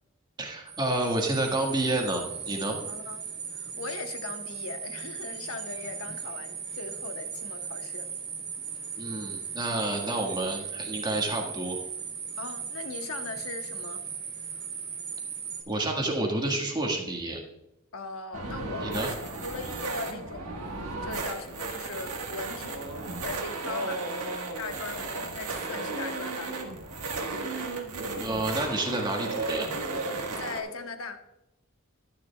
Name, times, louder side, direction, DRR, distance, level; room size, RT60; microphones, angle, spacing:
voice 1, 0.4-2.8 9.0-11.8 15.7-17.4 18.8-19.1 28.1-29.7, right 2 dB, 20° right, 1 dB, 1.6 m, -29 dB
sound 1, 0.7-15.6, right 6 dB, 50° right, 2.5 m, -38 dB
voice 2, 2.9-3.3 3.5-8.1 9.6-9.8 12.4-14.0 17.9-22.9 23.2-24.1 24.6-26.6 30.4-31.2, left 4 dB, 70° left, 6 dB, 1.0 m, -39 dB
sound 2, 18.3-30.6, right 3 dB, 80° right, 1.6 m, -34 dB
11.5 x 10.0 x 2.3 m, 0.90 s
head